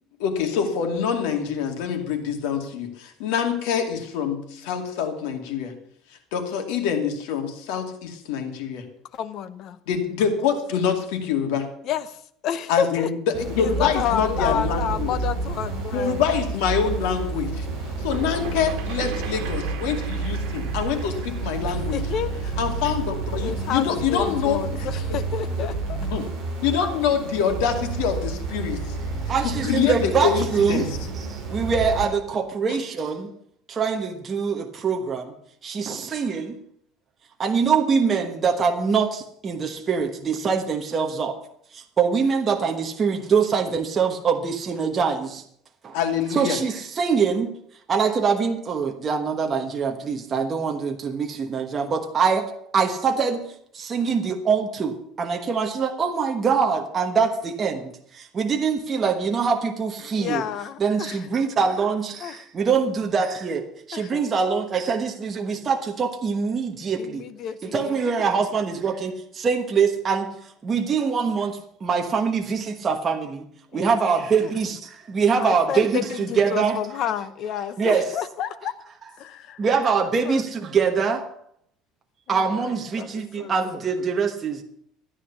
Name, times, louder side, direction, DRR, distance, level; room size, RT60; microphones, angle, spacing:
voice 1, 0.2-5.7 6.3-8.8 9.9-11.7 12.7-15.2 15.9-17.7 18.0-22.0 22.6-24.9 26.1-26.3 26.6-29.0 29.4-30.8 32.7-32.8 45.9-46.6, left 7 dB, 80° left, 5 dB, 2.5 m, -25 dB
voice 2, 9.1-9.8 11.8-13.1 13.6-16.2 21.7-22.6 23.4-26.0 60.2-61.3 62.2-62.4 63.9-64.2 67.0-68.3 73.7-74.5 75.4-78.8 79.2-79.6 79.9-80.4 82.3-83.8, left 9 dB, 40° left, 13 dB, 0.8 m, -30 dB
sound 1, 13.3-32.0, right 3 dB, 45° right, 7.5 m, -30 dB
sound 2, 17.7-23.2, right 8 dB, 65° right, 2.4 m, -39 dB
voice 3, 29.3-30.9 31.3-33.3 33.7-35.3 35.6-36.6 37.4-41.4 41.7-45.4 45.8-46.0 46.3-47.5 47.9-60.4 60.8-67.2 67.7-73.5 73.7-76.8 77.8-78.1 79.6-81.3 82.3-84.6, right 5 dB, 20° right, 3 dB, 1.2 m, -24 dB
13.5 x 10.0 x 7.1 m, 0.66 s
cardioid pair, 180°, 0 cm